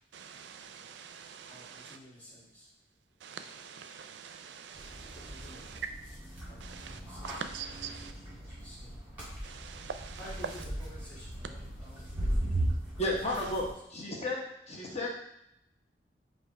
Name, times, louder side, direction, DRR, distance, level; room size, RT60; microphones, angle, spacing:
voice 1, 0.1-2.0 3.2-5.8 6.6-7.0 7.2-8.1 9.4-10.2, right 6 dB, 80° right, 0.4 m, -45 dB
sound 1, 4.7-13.7, right 1 dB, 10° right, 1.7 m, -38 dB
voice 2, 10.2-12.3, equal, 10° left, 1.6 m, -49 dB
voice 3, 13.0-14.4 14.7-15.1, left 1 dB, 35° left, 0.9 m, -33 dB
4.8 x 2.5 x 4.2 m
head